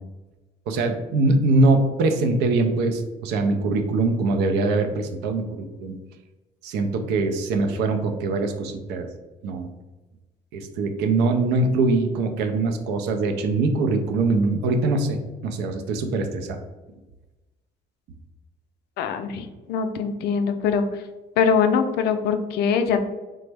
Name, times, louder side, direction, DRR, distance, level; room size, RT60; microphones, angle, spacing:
voice 1, 0.7-6.0 6.6-9.1 9.4-9.7 10.5-16.6, right 3 dB, 85° right, 6 dB, 0.5 m, -23 dB
voice 2, 19.0-20.8 21.4-23.1, left 6 dB, 75° left, 7 dB, 0.4 m, -22 dB
3.2 x 2.0 x 3.3 m, 1.1 s
cardioid pair, 110°, 17 cm